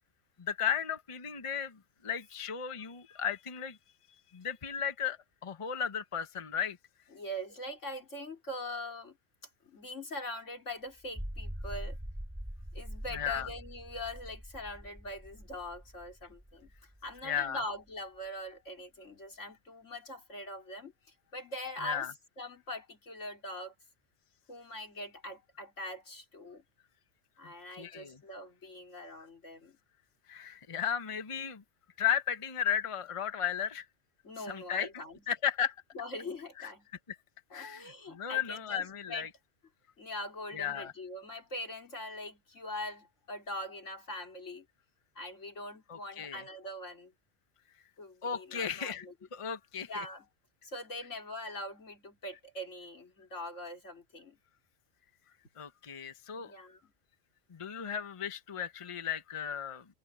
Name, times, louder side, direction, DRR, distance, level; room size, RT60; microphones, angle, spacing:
voice 1, 0.4-3.8 4.3-6.8 13.1-13.5 17.2-17.6 21.8-22.1 27.4-28.2 30.3-31.6 32.0-33.9 34.5-34.9 35.3-35.7 36.6-36.7 37.1-37.2 37.5-39.3 40.5-40.9 45.9-46.4 48.2-49.0 49.3-50.0 55.6-56.5 57.5-59.8, left 8 dB, 30° left, 1.0 m, -35 dB
voice 2, 7.1-9.2 9.6-12.0 12.7-16.7 17.0-20.9 21.3-22.1 22.4-23.7 24.5-26.6 27.4-29.8 34.2-35.2 35.9-36.9 37.5-39.3 40.0-44.7 45.2-47.1 48.0-49.1 49.8-50.3 50.6-54.4 56.4-56.9, left 1 dB, 85° left, 4.1 m, -42 dB
sound 1, 11.0-17.5, equal, 10° right, 3.4 m, -43 dB
omnidirectional pair, 1.2 m